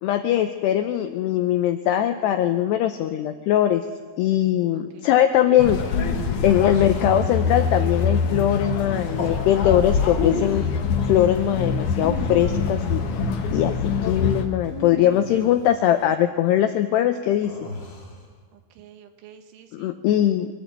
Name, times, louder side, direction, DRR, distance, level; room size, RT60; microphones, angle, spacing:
voice 1, 0.0-3.8 4.2-5.8 6.4-10.7 11.1-13.0 13.5-13.8 14.0-17.5 19.7-20.5, left 11 dB, 90° left, 8 dB, 2.4 m, -21 dB
sound 1, 5.6-14.4, left 5 dB, 60° left, 2.1 m, -25 dB
sound 2, 5.7-7.7 8.9-9.4 10.1-10.8 11.8-13.2 14.6-15.9 17.4-18.2, left 4 dB, 30° left, 2.3 m, -33 dB
voice 2, 13.2-13.7 15.4-15.6 18.5-20.0, right 9 dB, 75° right, 6 dB, 3.7 m, -50 dB
24.5 x 13.0 x 8.2 m, 1.4 s
omnidirectional pair, 5.8 m